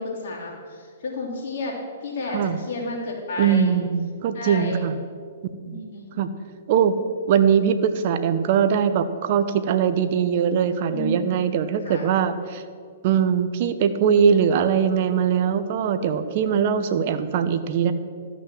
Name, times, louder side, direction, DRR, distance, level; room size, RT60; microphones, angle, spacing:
voice 1, 0.0-3.8 4.3-4.8 5.6-6.1 10.9-11.5 11.8-12.1, left 2 dB, 65° left, -2 dB, 3.0 m, -31 dB
voice 2, 3.4-5.0 5.7-5.8 6.2-6.3 6.7-7.0 7.3-12.6 13.0-17.9, right 7 dB, 50° right, 10 dB, 0.9 m, -21 dB
13.0 x 6.2 x 7.4 m, 2.1 s
hypercardioid pair, 130°, 0 cm